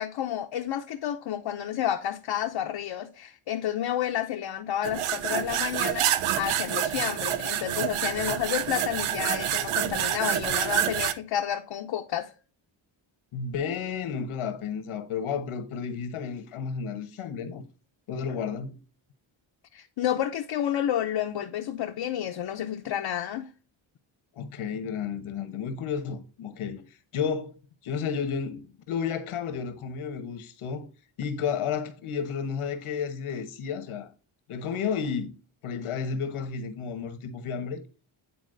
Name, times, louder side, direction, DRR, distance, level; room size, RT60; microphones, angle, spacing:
voice 1, 0.0-12.3 19.7-23.5, left 11 dB, 65° left, 0.7 m, -30 dB
sound 1, 4.8-11.1, right 11 dB, 85° right, 0.6 m, -27 dB
voice 2, 13.3-17.6 18.1-18.8 24.3-26.8 27.1-27.5 27.8-30.9 31.2-34.1 34.5-35.3 35.6-37.8, left 6 dB, 90° left, 1.2 m, -32 dB
9.4 x 4.2 x 2.5 m
cardioid pair, 105°, 48 cm